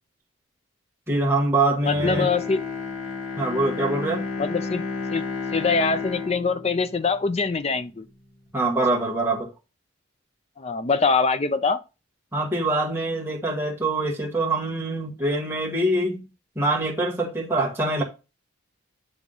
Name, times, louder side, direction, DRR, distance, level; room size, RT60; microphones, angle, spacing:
voice 1, 1.1-2.3 3.4-4.2 8.5-9.5 12.3-16.2 16.5-18.0, right 2 dB, 10° right, 1.5 m, -24 dB
Bowed string instrument, 1.8-8.1 8.5-8.6, left 4 dB, 60° left, 2.0 m, -32 dB
voice 2, 1.9-2.6 4.4-4.8 5.1-5.2 5.5-8.0 10.6-11.8, left 4 dB, 30° left, 0.4 m, -23 dB
9.0 x 3.6 x 3.8 m
head